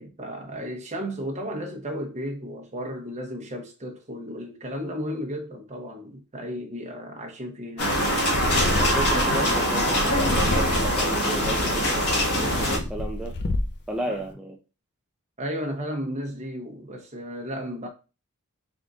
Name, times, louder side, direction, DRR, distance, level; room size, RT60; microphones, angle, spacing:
voice 1, 0.0-8.1 14.1-14.2 15.4-17.9, equal, 30° right, 0.8 m, -34 dB
sound 1, 7.8-12.8, equal, 85° left, 1.3 m, -23 dB
Purr, 8.3-9.4 10.0-11.1 11.8-13.9, left 2 dB, 50° left, 0.5 m, -29 dB
voice 2, 8.8-11.7 12.0-13.3 13.9-14.6, right 1 dB, 5° right, 0.4 m, -33 dB
3.6 x 2.5 x 3.6 m
head